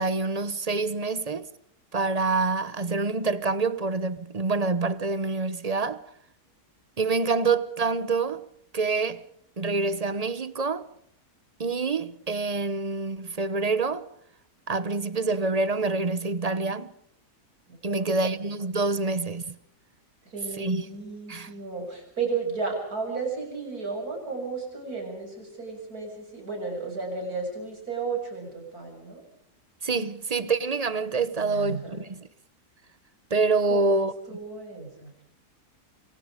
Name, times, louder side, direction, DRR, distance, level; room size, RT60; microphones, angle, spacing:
voice 1, 0.0-1.5 1.9-6.0 7.0-8.4 8.7-9.2 9.6-10.9 11.6-14.1 14.7-16.9 17.8-19.6 20.6-20.8 21.3-21.5 29.8-32.3 33.3-34.4, right 3 dB, 30° right, 0.7 m, -26 dB
voice 2, 17.7-18.4 20.3-29.2 31.3-32.0 33.7-35.1, right 4 dB, 65° right, 7.6 m, -34 dB
27.0 x 24.0 x 5.1 m
omnidirectional pair, 1.7 m